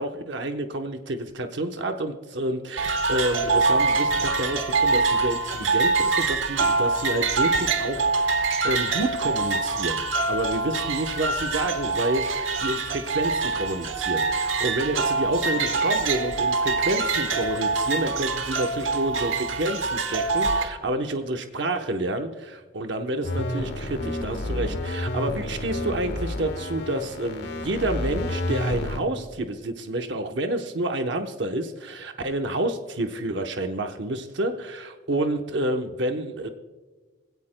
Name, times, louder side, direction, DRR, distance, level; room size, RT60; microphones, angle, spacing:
voice 1, 0.0-36.5, right 1 dB, 65° right, 5 dB, 0.9 m, -29 dB
sound 1, 2.8-20.6, right 3 dB, 85° right, 1.2 m, -25 dB
sound 2, 23.2-29.0, left 1 dB, 60° left, 1.4 m, -30 dB
23.0 x 16.5 x 2.2 m, 1.3 s
head